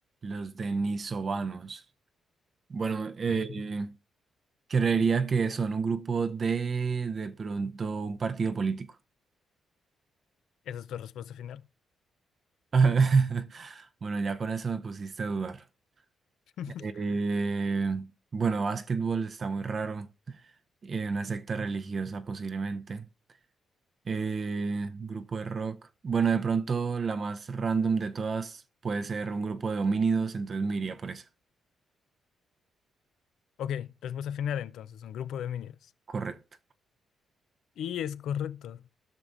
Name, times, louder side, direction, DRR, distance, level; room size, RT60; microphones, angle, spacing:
voice 1, 0.2-1.8 2.7-3.9 4.7-9.0 12.7-15.6 16.8-20.4 20.8-23.0 24.1-25.8 26.0-31.2 36.1-36.4, right 5 dB, 50° right, 0.6 m, -29 dB
voice 2, 10.7-11.6 16.6-17.0 33.6-35.8 37.8-38.8, left 9 dB, 80° left, 0.4 m, -35 dB
16.0 x 5.9 x 2.5 m
supercardioid pair, 65°, 0 cm